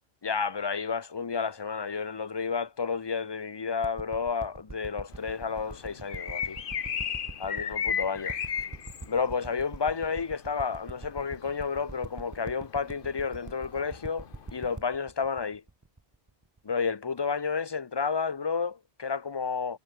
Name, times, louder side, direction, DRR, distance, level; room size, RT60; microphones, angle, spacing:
voice 1, 0.2-6.6 7.4-8.4 9.1-14.3 14.5-15.6 16.6-19.8, left 5 dB, 30° left, 0.5 m, -31 dB
sound 1, 3.8-16.6 17.2-17.3, right 3 dB, 15° right, 0.8 m, -44 dB
sound 2, 5.1-14.7, left 7 dB, 50° left, 1.0 m, -35 dB
omnidirectional pair, 1.2 m